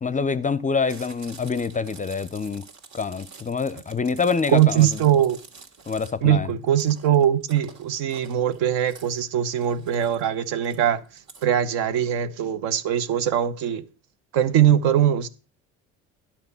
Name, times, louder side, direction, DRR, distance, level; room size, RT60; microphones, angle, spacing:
voice 1, 0.0-2.7 2.9-5.0 5.9-6.5, left 5 dB, 20° left, 0.5 m, -26 dB
Chewing mastication, 0.8-11.4, right 5 dB, 45° right, 2.0 m, -48 dB
voice 2, 4.5-5.4 6.2-11.0 11.4-13.8 14.3-15.3, right 10 dB, 70° right, 0.9 m, -21 dB
11.0 x 4.3 x 6.8 m
hypercardioid pair, 60°, 40 cm